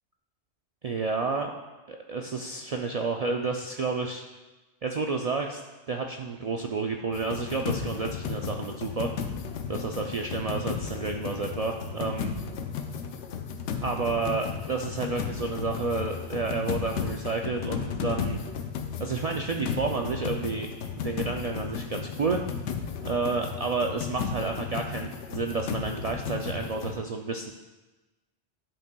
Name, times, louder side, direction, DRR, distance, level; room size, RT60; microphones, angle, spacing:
voice 1, 0.8-1.5 1.9-4.2 4.8-5.6 5.9-9.1 9.7-12.3 13.8-18.4 19.0-20.7 21.0-22.4 23.0-27.5, right 4 dB, 70° right, 2 dB, 0.3 m, -30 dB
sound 1, 7.1-27.0, left 6 dB, 80° left, 0.9 m, -34 dB
10.5 x 5.4 x 2.2 m, 1.1 s
omnidirectional pair, 1.2 m